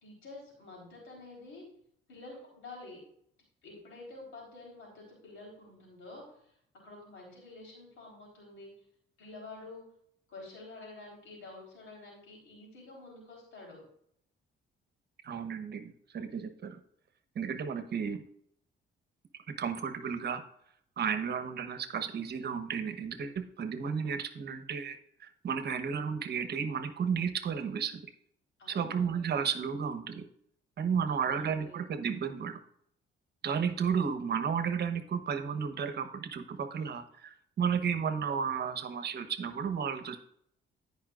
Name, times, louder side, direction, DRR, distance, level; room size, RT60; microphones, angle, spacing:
voice 1, 0.0-1.6 2.1-3.0 3.6-8.7 9.2-9.9 10.3-13.8 28.6-29.2 31.1-31.8, left 2 dB, 80° left, -3 dB, 4.1 m, -49 dB
voice 2, 15.2-16.8 17.3-18.2 19.5-20.4 21.0-28.0 28.7-30.2 30.8-32.6 33.4-40.2, right 6 dB, 55° right, 9 dB, 1.0 m, -33 dB
17.0 x 5.6 x 2.5 m, 0.68 s
cardioid pair, 90°, 20 cm